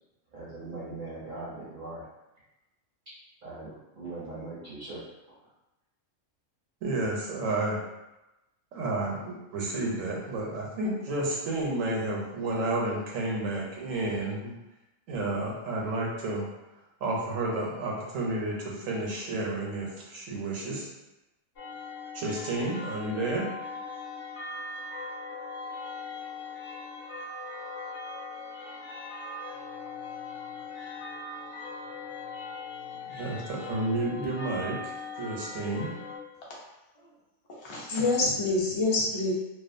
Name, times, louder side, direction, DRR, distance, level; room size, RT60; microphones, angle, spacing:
voice 1, 0.3-2.1 3.4-5.1, right 2 dB, 50° right, -8 dB, 0.6 m, -40 dB
voice 2, 6.8-7.8 8.7-14.5 15.1-16.5 17.0-20.9 22.1-23.4 33.1-34.8 35.2-35.9, right 2 dB, 90° right, -3 dB, 1.1 m, -31 dB
sound 1, 21.6-36.2, left 3 dB, 65° left, 0.7 m, -40 dB
voice 3, 37.5-39.3, left 2 dB, 40° left, -4 dB, 0.4 m, -27 dB
2.4 x 2.4 x 2.5 m, 0.99 s
omnidirectional pair, 1.3 m